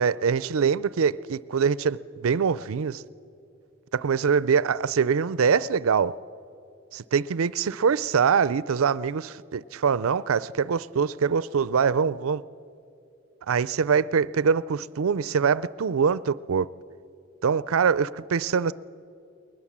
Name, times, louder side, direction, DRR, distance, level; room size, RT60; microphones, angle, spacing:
voice 1, 0.0-3.0 3.9-6.1 6.9-12.4 13.5-16.7 17.4-18.7, right 6 dB, 80° right, 0.5 m, -24 dB
20.5 x 20.5 x 7.3 m
head